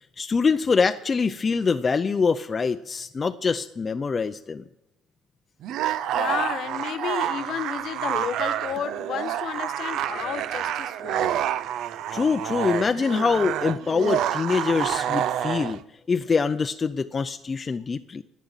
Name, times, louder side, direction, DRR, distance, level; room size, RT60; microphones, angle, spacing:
voice 1, 0.2-4.6 12.1-15.8 16.1-18.2, left 5 dB, 35° left, 0.5 m, -24 dB
sound 1, 5.6-15.8, right 11 dB, 70° right, 0.5 m, -28 dB
voice 2, 5.8-11.4, left 9 dB, 65° left, 1.2 m, -32 dB
11.5 x 9.4 x 9.0 m
supercardioid pair, 80°, 0 cm